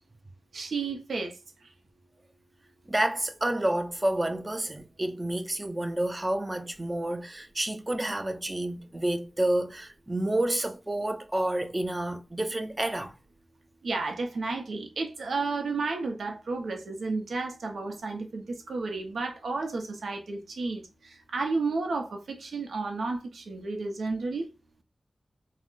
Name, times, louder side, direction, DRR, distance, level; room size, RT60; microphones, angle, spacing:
voice 1, 0.5-1.4 13.8-24.5, right 3 dB, 90° right, 0.6 m, -32 dB
voice 2, 2.9-13.1, right 1 dB, 25° right, 0.4 m, -29 dB
2.4 x 2.0 x 3.7 m
cardioid pair, 50°, 0 cm